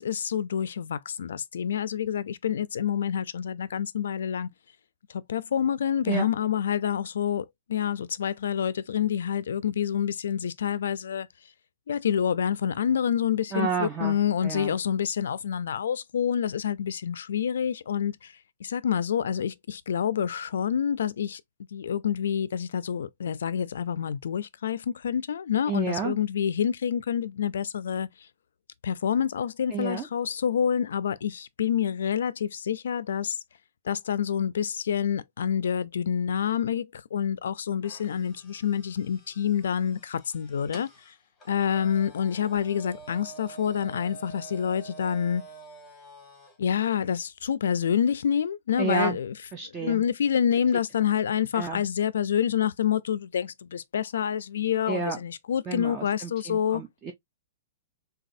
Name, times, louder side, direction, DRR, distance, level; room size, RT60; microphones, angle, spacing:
voice 1, 0.0-4.5 5.1-11.3 11.9-18.3 18.6-21.4 21.7-28.1 28.8-33.4 33.9-41.1 41.5-45.4 46.6-49.3 49.8-56.8, left 8 dB, 85° left, 0.4 m, -27 dB
voice 2, 13.5-14.2 14.4-14.7 25.7-26.2 29.7-30.1 48.8-49.2 49.5-50.0 51.5-51.8 54.9-55.2 55.7-57.1, right 5 dB, 15° right, 0.4 m, -30 dB
sound 1, 37.8-46.6, right 3 dB, 10° left, 0.8 m, -48 dB
4.0 x 2.3 x 2.6 m
hypercardioid pair, 180°, 0 cm